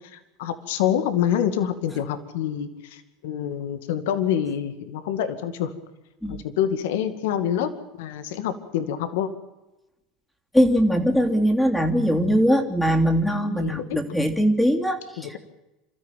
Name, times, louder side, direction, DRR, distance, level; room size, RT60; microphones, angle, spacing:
voice 1, 0.0-5.7 6.3-7.7 8.0-9.3 13.6-13.9 15.2-15.4, left 9 dB, 75° left, 10 dB, 2.2 m, -26 dB
voice 2, 10.5-15.4, equal, 5° left, 3 dB, 3.3 m, -21 dB
27.5 x 14.0 x 9.2 m, 1.0 s
hypercardioid pair, 90°, 0 cm